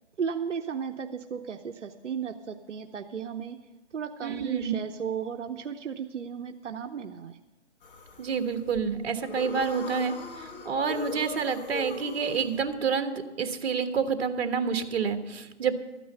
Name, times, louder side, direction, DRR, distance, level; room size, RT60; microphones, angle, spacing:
voice 1, 0.2-3.6 3.9-7.4, right 7 dB, 85° right, 5 dB, 0.8 m, -34 dB
voice 2, 4.2-4.7 8.2-15.7, right 6 dB, 60° right, 8 dB, 1.4 m, -28 dB
sound 1, 7.8-12.8, left 4 dB, 50° left, 2.0 m, -39 dB
13.5 x 9.3 x 6.8 m, 1.2 s
hypercardioid pair, 150°, 35 cm